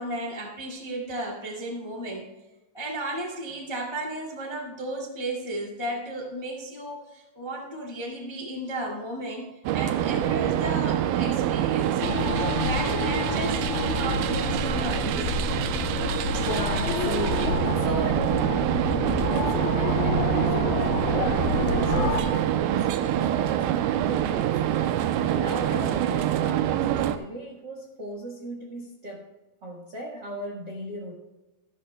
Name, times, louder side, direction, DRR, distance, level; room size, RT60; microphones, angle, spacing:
voice 1, 0.0-2.2 2.7-12.0 12.5-15.3 16.1-16.5, right 1 dB, 20° left, -1 dB, 0.6 m, -34 dB
sound 1, 9.7-27.2, right 11 dB, 85° right, 2.4 m, -26 dB
sound 2, 12.0-22.2, left 5 dB, 80° left, 2.8 m, -29 dB
voice 2, 16.4-29.3 29.6-31.1, right 1 dB, 65° right, -1 dB, 1.0 m, -37 dB
14.5 x 12.5 x 2.2 m, 1.1 s
omnidirectional pair, 4.3 m